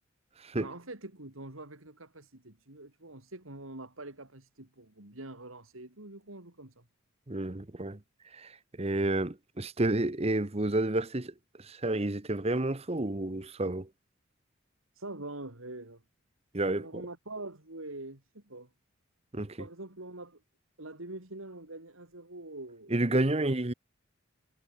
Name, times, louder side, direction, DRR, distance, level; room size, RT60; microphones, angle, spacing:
voice 1, 0.6-6.8 14.9-16.0 16.7-18.7 19.6-20.4 20.8-23.0, right 2 dB, 85° right, 4.0 m, -44 dB
voice 2, 7.3-8.0 8.3-13.9 16.5-17.0 19.3-19.6 22.9-23.7, right 2 dB, 30° right, 1.1 m, -30 dB
head